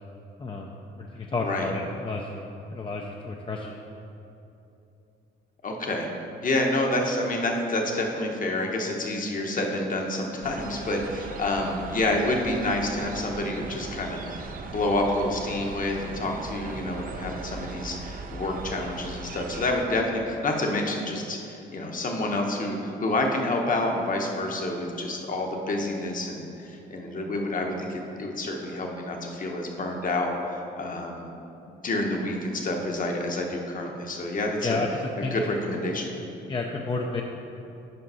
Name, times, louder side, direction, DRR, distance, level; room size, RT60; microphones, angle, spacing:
voice 1, 0.4-3.8 34.6-35.5 36.5-37.2, left 3 dB, 25° left, 0 dB, 0.5 m, -31 dB
voice 2, 5.6-6.1 6.4-31.3 31.6-34.8 35.3-36.1, left 2 dB, 45° left, 1 dB, 1.0 m, -28 dB
sound 1, 10.4-19.8, right 4 dB, 45° right, 0.5 m, -39 dB
5.4 x 5.1 x 5.5 m, 2.8 s
cardioid pair, 90°, 20 cm